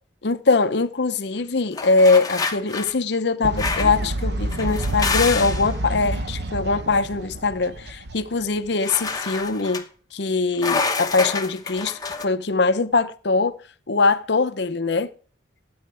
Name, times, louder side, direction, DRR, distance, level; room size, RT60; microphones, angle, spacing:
voice 1, 0.2-9.8 10.1-13.6 13.9-15.1, left 3 dB, 60° left, 0.8 m, -22 dB
sound 1, 1.8-2.9 3.6-4.0 4.5-5.7 8.8-9.8 10.6-12.3, left 4 dB, 20° left, 0.9 m, -27 dB
Fowl, 3.4-8.7, right 1 dB, 60° right, 0.9 m, -28 dB
13.0 x 8.8 x 3.4 m
head